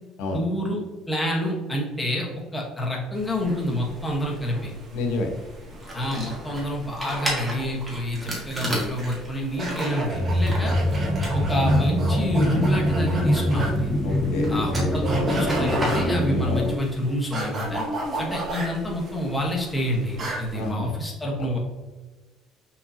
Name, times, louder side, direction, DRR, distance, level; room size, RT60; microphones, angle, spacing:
voice 1, 0.3-4.7 5.9-10.8 11.3-13.9 14.5-17.9 18.2-21.6, equal, 10° left, -2 dB, 1.3 m, -28 dB
sound 1, 3.1-20.7, right 1 dB, 35° right, 1.9 m, -35 dB
voice 2, 4.9-5.3 14.0-14.5 16.4-16.7 20.5-20.9, left 3 dB, 80° left, 2 dB, 1.1 m, -28 dB
sound 2, 5.6-13.4 13.6-16.0, equal, 15° right, 1.9 m, -34 dB
sound 3, 10.1-16.7, left 1 dB, 30° left, 1.8 m, -24 dB
5.7 x 5.7 x 2.9 m, 1.3 s
cardioid pair, 150°, 0 cm